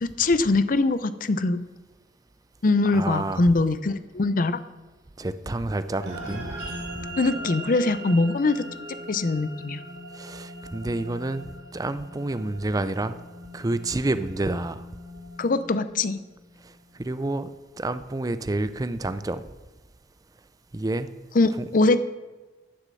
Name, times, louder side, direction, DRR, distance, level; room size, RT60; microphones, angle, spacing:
voice 1, 0.0-1.6 2.6-4.6 7.2-8.7 9.1-9.8 15.4-16.2 21.3-22.0, left 3 dB, 50° left, 13 dB, 0.6 m, -22 dB
voice 2, 2.9-3.4 5.2-6.5 10.2-11.5 11.7-13.2 13.5-14.8 17.0-17.5 17.8-19.4 20.7-21.1, right 2 dB, 20° right, 13 dB, 0.5 m, -28 dB
sound 1, 6.0-16.6, right 1 dB, 65° right, 3.2 m, -40 dB
11.5 x 6.6 x 7.6 m, 1.2 s
head